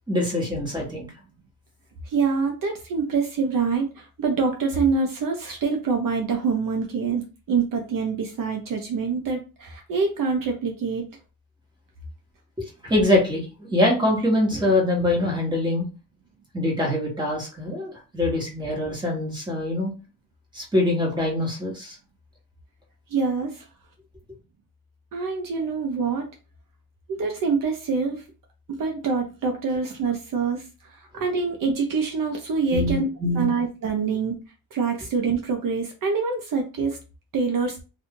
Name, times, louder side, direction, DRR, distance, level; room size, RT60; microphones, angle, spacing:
voice 1, 0.1-1.1 12.8-15.9 16.5-19.9 20.5-22.0 32.7-33.5, left 1 dB, 10° right, -2 dB, 1.4 m, -24 dB
voice 2, 2.0-7.2 7.5-11.0 23.1-23.6 25.1-26.3 27.1-28.2 28.7-30.6 30.9-33.1 33.3-34.3 34.7-37.0 37.3-37.8, right 5 dB, 60° right, 2 dB, 0.8 m, -25 dB
2.7 x 2.5 x 3.6 m, 0.32 s
cardioid pair, 125°, 37 cm